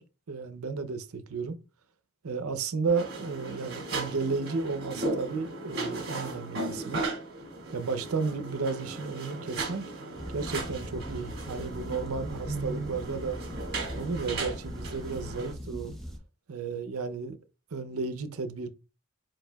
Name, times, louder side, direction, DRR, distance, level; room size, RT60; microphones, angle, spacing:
voice 1, 0.0-1.6 2.2-7.0 7.7-9.8 10.3-13.4 13.9-15.9 16.5-17.4 17.7-18.7, right 4 dB, 75° right, 0.6 m, -33 dB
sound 1, 2.9-15.5, right 2 dB, 45° right, 1.8 m, -36 dB
sound 2, 10.2-16.2, equal, ahead, 0.4 m, -40 dB
4.7 x 4.6 x 2.3 m
head